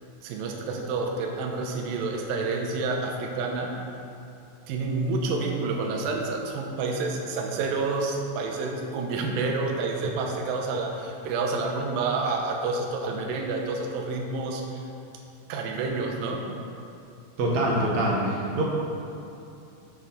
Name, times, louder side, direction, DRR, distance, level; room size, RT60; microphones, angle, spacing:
voice 1, 0.2-3.8 4.7-14.8 15.5-16.4, right 3 dB, 85° right, 1 dB, 2.6 m, -29 dB
voice 2, 17.4-18.6, right 1 dB, 60° right, -3 dB, 2.1 m, -24 dB
9.4 x 8.8 x 3.9 m, 2.7 s
omnidirectional pair, 4.0 m